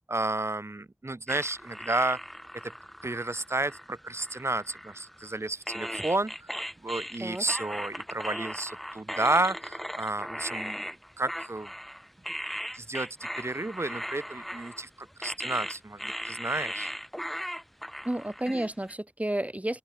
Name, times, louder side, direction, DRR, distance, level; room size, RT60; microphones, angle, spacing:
voice 1, 0.0-2.2 2.6-2.7 3.0-6.6 6.8-11.7 12.7-16.9, right 2 dB, 65° right, 7.2 m, -31 dB
sound 1, 1.3-5.3 5.7-18.9, equal, ahead, 1.9 m, -38 dB
voice 2, 18.1-19.8, right 1 dB, 30° right, 3.3 m, -31 dB
open air
wide cardioid pair, 40°, 5 cm